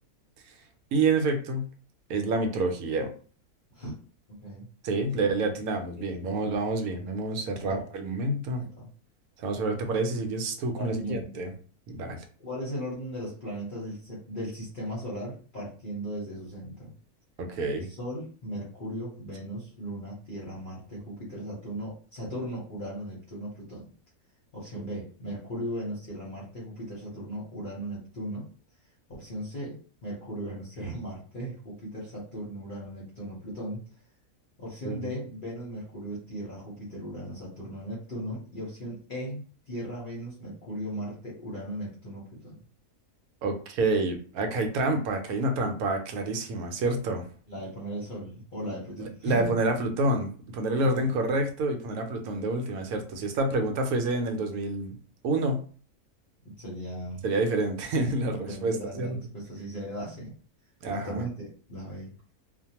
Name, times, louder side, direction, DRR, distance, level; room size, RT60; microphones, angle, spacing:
voice 1, 0.9-1.6 2.1-3.1 4.8-8.6 9.4-11.5 11.9-12.2 17.4-17.9 24.8-24.9 34.8-35.1 43.4-47.2 49.0-50.3 50.5-55.0 55.2-55.6 57.2-59.2 60.8-61.2, right 2 dB, 75° right, 5 dB, 1.0 m, -28 dB
voice 2, 4.3-4.7 5.1-5.6 6.0-6.4 7.6-8.1 8.5-8.9 10.7-11.5 12.4-16.9 17.9-23.9 24.5-28.5 29.1-33.8 34.6-42.6 47.5-49.6 50.8-51.1 56.4-57.2 58.2-60.3 60.8-62.1, equal, 45° left, -6 dB, 0.7 m, -37 dB
2.5 x 2.2 x 2.8 m, 0.41 s
omnidirectional pair, 1.6 m